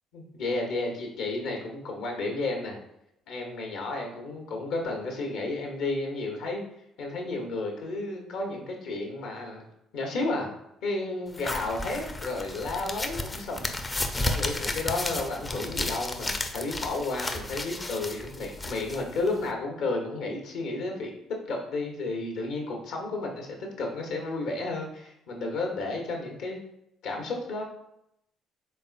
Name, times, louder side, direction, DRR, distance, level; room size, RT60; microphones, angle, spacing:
voice 1, 0.1-2.8 3.3-6.6 7.0-9.7 9.9-10.5 10.8-13.7 14.2-21.1 21.5-26.6 27.0-27.6, left 2 dB, 70° left, 1 dB, 1.0 m, -32 dB
sound 1, 11.3-19.5, left 2 dB, 25° left, 0.5 m, -33 dB
4.4 x 3.7 x 2.5 m, 0.80 s
hypercardioid pair, 55°, 0 cm